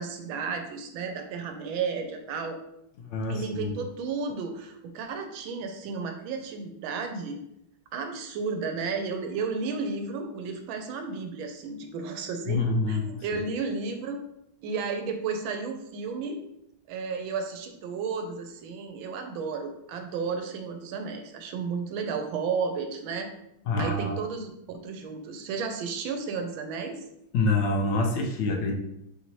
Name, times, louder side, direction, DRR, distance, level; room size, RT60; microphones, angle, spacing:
voice 1, 0.0-2.6 3.3-7.4 7.9-14.2 14.6-16.4 16.9-23.3 23.8-24.5 24.8-27.0, right 5 dB, 85° right, 5 dB, 1.4 m, -33 dB
voice 2, 3.0-3.8 12.5-13.4 23.7-24.2 27.3-28.8, left 2 dB, 75° left, 2 dB, 1.2 m, -27 dB
4.2 x 2.8 x 3.0 m, 0.80 s
omnidirectional pair, 2.1 m